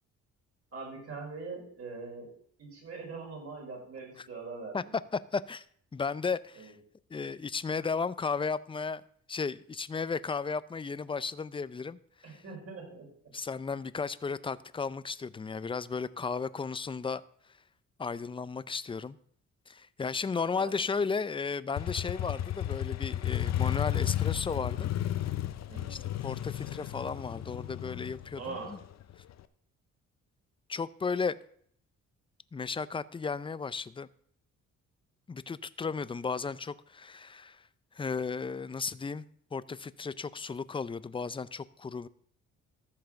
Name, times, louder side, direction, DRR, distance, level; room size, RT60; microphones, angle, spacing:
voice 1, 0.7-2.3 2.6-4.8 6.6-6.7 12.2-13.1 20.3-20.7 25.7-26.0 28.4-28.8, right 4 dB, 50° right, -1 dB, 5.1 m, -42 dB
voice 2, 5.1-5.7 5.9-6.7 7.1-9.0 9.3-12.0 12.3-12.4 13.3-17.2 18.0-19.2 19.7-24.9 25.9-28.8 30.7-31.4 32.5-34.1 35.3-37.6 37.9-39.3 39.5-42.1, left 5 dB, 20° left, 16 dB, 0.4 m, -34 dB
Motorcycle, 21.8-29.4, left 12 dB, 60° left, 0.7 m, -33 dB
14.0 x 4.7 x 6.5 m, 0.63 s
cardioid pair, 90°, 30 cm